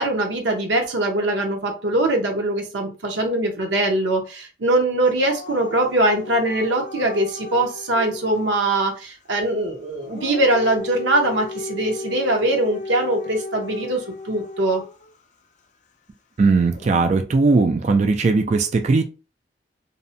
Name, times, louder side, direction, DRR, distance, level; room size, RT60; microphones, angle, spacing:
voice 1, 0.0-14.8, right 1 dB, 85° right, 3 dB, 0.7 m, -22 dB
Dog / Siren, 5.2-8.5 9.9-15.1 16.7-17.1, left 3 dB, 45° left, 0.4 m, -35 dB
voice 2, 16.4-19.0, right 3 dB, 40° right, 6 dB, 0.3 m, -18 dB
2.6 x 2.1 x 2.6 m, 0.32 s
head